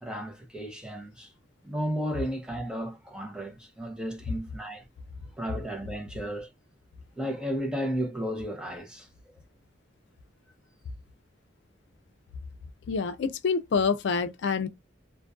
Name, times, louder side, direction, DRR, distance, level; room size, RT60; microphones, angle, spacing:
voice 1, 0.0-1.3 1.6-4.8 5.4-6.5 7.2-9.1, equal, 5° right, 0.5 m, -33 dB
voice 2, 12.9-14.7, left 5 dB, 70° left, 0.4 m, -27 dB
2.4 x 2.1 x 2.4 m
head